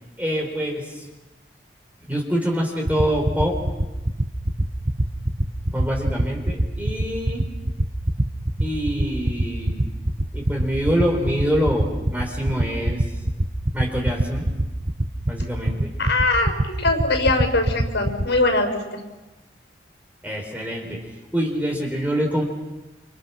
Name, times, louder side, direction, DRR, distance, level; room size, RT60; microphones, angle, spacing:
voice 1, 0.2-1.1 2.1-3.7 5.7-7.4 8.6-9.9 10.3-13.0 13.7-14.5 15.3-15.9 20.2-22.4, equal, 10° right, 0 dB, 4.6 m, -25 dB
sound 1, 2.9-18.2, right 1 dB, 40° right, 1.3 m, -21 dB
voice 2, 16.0-19.0, left 2 dB, 85° left, 4 dB, 6.2 m, -22 dB
29.5 x 27.0 x 6.1 m, 1.1 s
head